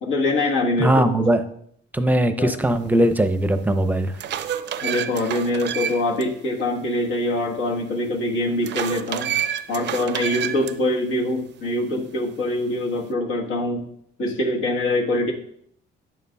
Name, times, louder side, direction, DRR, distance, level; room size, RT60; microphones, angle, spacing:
voice 1, 0.0-1.1 2.4-2.5 4.8-9.4 9.7-13.9 14.2-15.3, left 1 dB, 80° left, -1 dB, 1.4 m, -24 dB
voice 2, 0.8-1.4 1.9-4.1, right 1 dB, 10° right, 9 dB, 0.6 m, -19 dB
sound 1, 3.2-3.3 3.9-6.2 6.6-6.7 8.6-10.7, right 9 dB, 60° right, 0.5 m, -28 dB
8.7 x 6.7 x 2.3 m, 0.68 s
cardioid pair, 90°, 20 cm